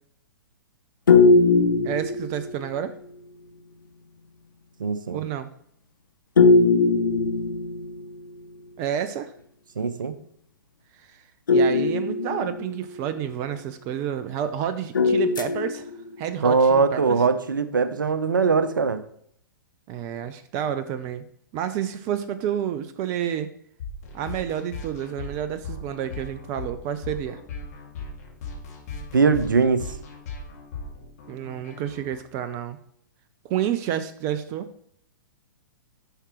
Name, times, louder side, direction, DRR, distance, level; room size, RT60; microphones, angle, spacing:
sound 1, 1.1-2.8 6.4-8.2 11.5-13.0 15.0-16.2, left 3 dB, 70° left, 0.6 m, -20 dB
voice 1, 1.8-2.9 5.1-5.5 8.8-9.3 11.1-11.2 11.5-15.9 16.2-17.2 19.9-21.2 21.5-23.5 24.1-27.4 31.3-32.8 33.4-34.7, right 9 dB, 30° right, 11 dB, 0.4 m, -29 dB
voice 2, 4.8-5.2 9.8-10.1 16.4-19.0 29.1-29.9, right 4 dB, 70° right, 12 dB, 0.7 m, -21 dB
sound 2, 23.8-32.2, left 3 dB, 50° left, 2.2 m, -38 dB
9.9 x 5.9 x 3.0 m, 0.67 s
figure-of-eight pair, 110°, 11 cm